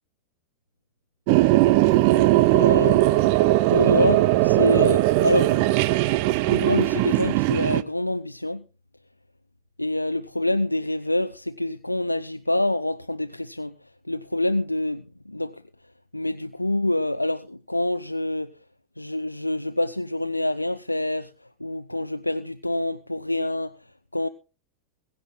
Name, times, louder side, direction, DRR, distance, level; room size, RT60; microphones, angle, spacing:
sound 1, 1.3-7.8, right 17 dB, 45° right, 0.7 m, -19 dB
voice 1, 2.5-3.1 3.7-5.6 6.5-8.6 9.8-13.7 14.1-15.6 16.1-18.5 19.0-21.3 21.6-23.8 24.1-24.3, left 1 dB, 85° left, 0.5 m, -26 dB
21.5 x 8.9 x 3.8 m
figure-of-eight pair, 90°, 0 cm